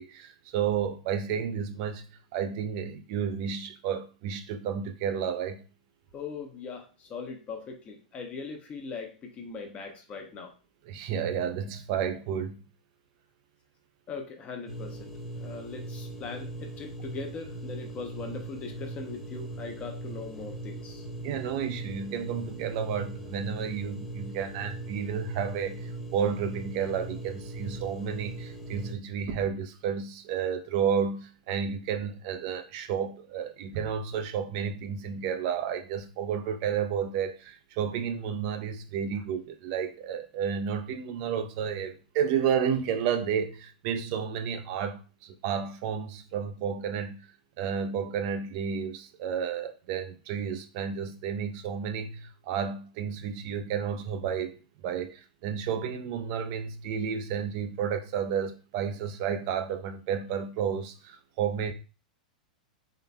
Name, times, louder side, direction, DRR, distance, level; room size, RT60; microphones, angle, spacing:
voice 1, 0.0-5.6 10.9-12.6 21.2-47.3 47.6-54.5 54.8-61.7, right 7 dB, 50° right, 0.5 m, -31 dB
voice 2, 6.1-10.5 14.1-21.1, left 4 dB, 30° left, 0.9 m, -40 dB
sound 1, 14.7-28.9, right 2 dB, ahead, 1.1 m, -40 dB
3.7 x 3.3 x 2.2 m
hypercardioid pair, 100°, 5 cm